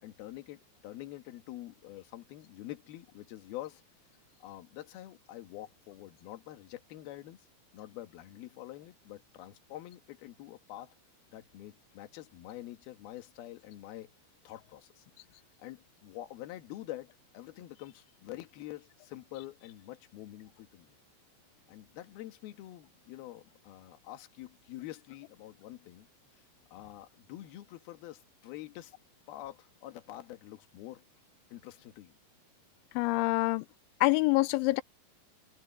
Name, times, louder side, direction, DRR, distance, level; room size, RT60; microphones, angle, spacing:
voice 1, 0.0-3.8 4.4-7.5 7.7-10.9 11.3-14.1 14.4-15.1 15.6-21.0 21.7-26.1 26.3-26.4 26.7-28.9 29.3-31.0 31.5-32.2, left 14 dB, 65° left, 3.1 m, -46 dB
voice 2, 33.0-33.7 34.0-34.8, left 21 dB, 90° left, 3.0 m, -26 dB
open air
omnidirectional pair, 5.4 m